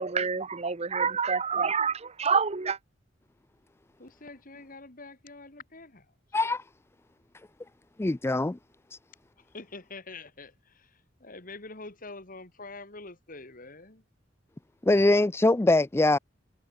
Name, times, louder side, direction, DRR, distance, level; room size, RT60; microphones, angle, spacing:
voice 1, 0.0-2.8, right 5 dB, 35° right, 0.9 m, -27 dB
voice 2, 4.0-6.1 9.4-14.0, left 3 dB, 45° left, 3.1 m, -45 dB
voice 3, 6.3-6.6 8.0-8.6 8.9-9.0 14.8-16.2, left 2 dB, 15° left, 0.4 m, -23 dB
head